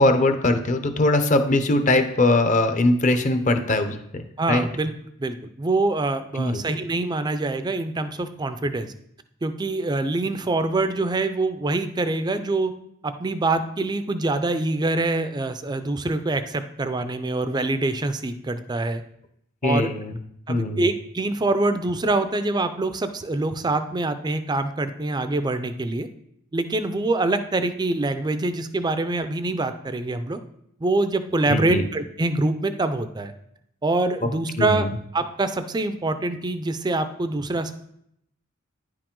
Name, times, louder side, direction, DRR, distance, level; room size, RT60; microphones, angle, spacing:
voice 1, 0.0-4.2 4.5-4.7 6.4-6.6 19.6-20.2 20.5-20.8 31.5-31.9 34.2-34.3 34.6-34.9, left 2 dB, 35° left, 8 dB, 0.7 m, -21 dB
voice 2, 4.4-4.9 5.2-8.9 9.4-12.7 13.0-19.0 19.6-19.9 20.5-26.1 26.5-30.4 30.8-33.3 33.8-34.8 35.1-37.7, right 2 dB, 20° right, 10 dB, 0.4 m, -25 dB
9.9 x 4.8 x 3.8 m, 0.74 s
head